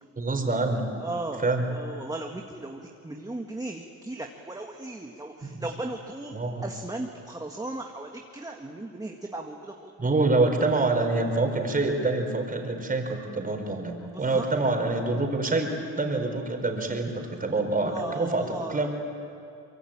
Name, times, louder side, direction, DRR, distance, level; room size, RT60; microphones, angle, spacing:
voice 1, 0.2-0.8 1.4-1.7 5.4-5.6 6.3-6.6 10.0-15.7 16.0-18.9, right 3 dB, 30° right, 4 dB, 4.5 m, -26 dB
voice 2, 1.0-9.9 14.1-14.4 17.7-18.9, right 2 dB, 10° right, 2 dB, 1.8 m, -37 dB
24.0 x 23.0 x 8.9 m, 2.5 s
cardioid pair, 90°, 30 cm